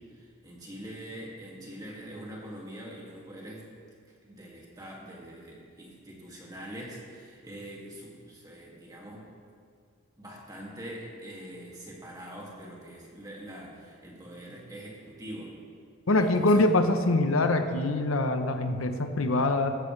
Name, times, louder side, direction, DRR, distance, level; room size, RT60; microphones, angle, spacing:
voice 1, 0.1-3.6 4.2-9.3 10.2-15.5 16.2-16.6, right 1 dB, 20° right, -3 dB, 2.2 m, -44 dB
voice 2, 16.1-19.8, left 2 dB, 85° left, 7 dB, 0.8 m, -24 dB
15.5 x 14.0 x 3.3 m, 2.2 s
head